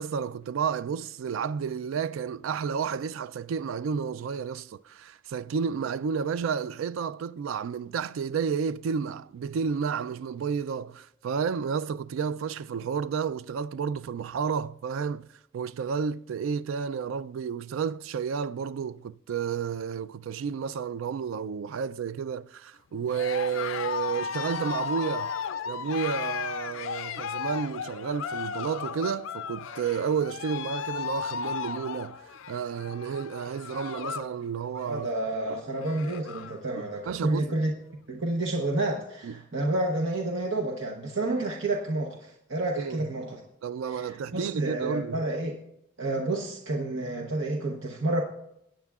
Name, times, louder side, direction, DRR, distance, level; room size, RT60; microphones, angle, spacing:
voice 1, 0.0-15.3 15.5-25.3 25.7-32.2 32.5-35.1 37.1-37.5 39.2-39.4 42.8-43.0 43.6-45.2, right 6 dB, 85° right, 0.3 m, -31 dB
Cheering, 23.1-34.3 34.6-35.0 35.5-35.6 35.7-36.6, left 7 dB, 85° left, 0.5 m, -35 dB
voice 2, 34.9-37.7 38.1-43.4 43.9-45.5 46.0-48.2, right 2 dB, 70° right, 0.9 m, -30 dB
19.5 x 9.0 x 2.4 m
head